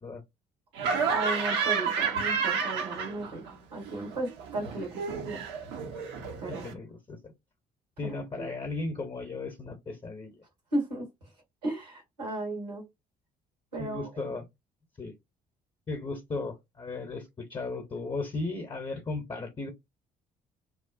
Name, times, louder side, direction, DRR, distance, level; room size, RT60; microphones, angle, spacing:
Laughter, 0.8-3.5 3.8-6.7, right 6 dB, 60° right, 0.7 m, -30 dB
voice 1, 1.1-3.4 3.7-5.4 6.4-6.7 8.0-8.5 10.7-11.1 11.6-12.8 13.7-14.3, right 2 dB, 80° right, 1.4 m, -35 dB
voice 2, 6.5-7.3 8.0-10.3 13.8-14.4 15.0-15.1 15.9-19.7, left 3 dB, 25° left, 0.8 m, -36 dB
3.0 x 2.0 x 2.5 m
figure-of-eight pair, 50°, 21 cm